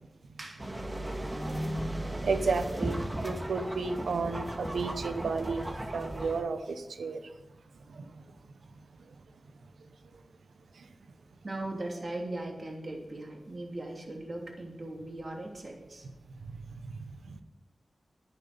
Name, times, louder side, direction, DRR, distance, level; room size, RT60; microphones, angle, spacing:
sound 1, 0.6-6.4, right 1 dB, 30° right, 1.8 m, -35 dB
voice 1, 2.2-5.6 5.9-7.2 16.8-16.9 17.3-17.4, right 4 dB, 90° right, 8 dB, 1.0 m, -32 dB
voice 2, 11.4-16.1, right 1 dB, 55° right, 0 dB, 3.0 m, -39 dB
11.0 x 9.9 x 5.2 m, 1.1 s
cardioid pair, 45°, 0 cm